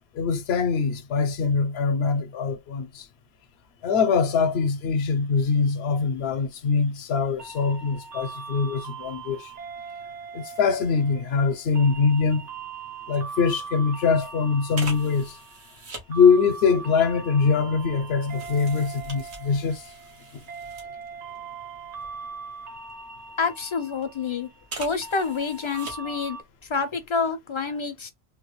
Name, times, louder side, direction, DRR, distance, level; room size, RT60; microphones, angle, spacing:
voice 1, 0.2-3.0 3.8-9.5 10.3-12.5 13.1-15.4 16.1-19.8, left 5 dB, 75° left, 0.8 m, -23 dB
sound 1, 7.4-26.4, right 5 dB, 50° right, 0.6 m, -40 dB
medium format camera, 13.1-13.3 13.6-13.8 14.7-16.1 16.9-21.4 21.7-23.1 23.7-24.1 24.6-26.3 26.6-26.7, right 2 dB, 90° right, 1.4 m, -42 dB
voice 2, 23.4-24.5 24.8-26.4 26.7-28.1, left 5 dB, 40° left, 0.5 m, -27 dB
3.7 x 2.2 x 3.0 m
omnidirectional pair, 1.1 m